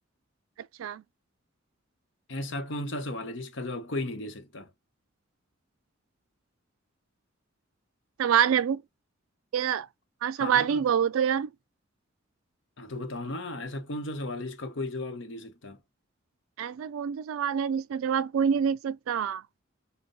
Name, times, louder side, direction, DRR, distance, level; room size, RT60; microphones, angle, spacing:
voice 1, 2.3-4.7 10.4-10.9 12.8-15.8, left 2 dB, 60° left, 0.9 m, -35 dB
voice 2, 8.2-8.8 9.5-9.9 10.2-11.5 16.6-19.4, right 8 dB, 80° right, 0.3 m, -26 dB
5.3 x 2.2 x 3.9 m
head